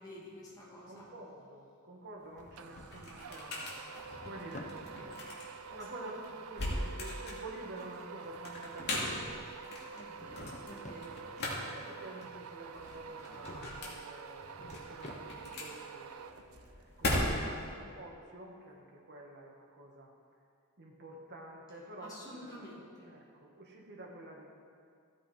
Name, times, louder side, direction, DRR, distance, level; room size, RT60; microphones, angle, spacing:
voice 1, 0.0-1.0 9.9-11.1 22.0-23.1, left 1 dB, 15° left, -6 dB, 2.5 m, -50 dB
voice 2, 0.8-5.3 5.6-9.6 10.6-20.1 20.8-22.8 23.1-24.4, right 2 dB, 55° right, -1 dB, 1.9 m, -49 dB
sound 1, 2.2-17.7, left 1 dB, 50° left, 2.4 m, -40 dB
Drawer open or close, 2.4-3.4 3.8-4.8 8.5-9.6 10.0-11.1 13.3-14.0 14.3-15.6, left 2 dB, 35° left, 0.7 m, -51 dB
sound 2, 2.6-16.8, right 6 dB, 80° right, 0.5 m, -48 dB
15.0 x 7.8 x 4.6 m, 2.2 s
head